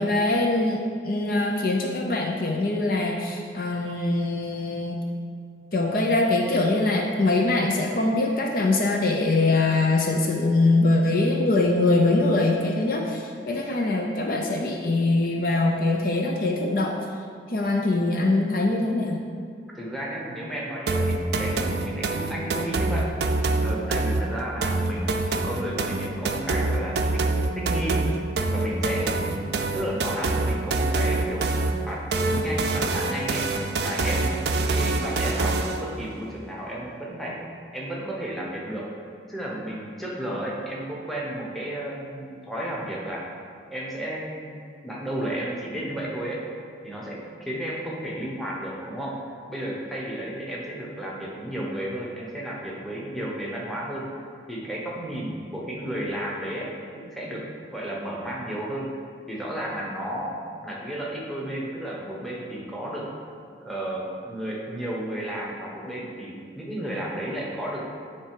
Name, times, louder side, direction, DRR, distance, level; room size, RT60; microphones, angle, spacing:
voice 1, 0.0-5.0 5.7-16.9 17.5-19.2, left 2 dB, 50° left, 0 dB, 0.5 m, -23 dB
voice 2, 19.7-23.1 23.6-27.2 27.5-28.0 28.5-31.6 31.9-37.4 37.7-38.9 39.3-43.2 43.7-46.4 46.8-49.2 49.5-54.1 54.5-58.9 59.3-63.1 63.6-67.9, right 1 dB, ahead, -4 dB, 1.0 m, -33 dB
sound 1, 20.9-35.9, right 2 dB, 60° right, 0.5 m, -25 dB
9.6 x 3.3 x 4.9 m, 2.2 s
head